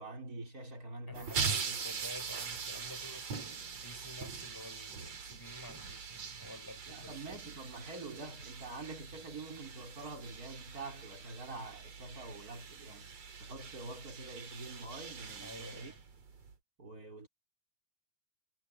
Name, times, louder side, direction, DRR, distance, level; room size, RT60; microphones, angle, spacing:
voice 1, 0.0-2.0 6.9-13.1 13.4-15.9 16.8-17.3, right 2 dB, 25° right, 4.7 m, -46 dB
voice 2, 1.1-7.2 15.4-16.0, left 1 dB, 5° left, 4.9 m, -51 dB
sound 1, 1.1-16.5, right 5 dB, 45° right, 3.5 m, -42 dB
omnidirectional pair, 4.4 m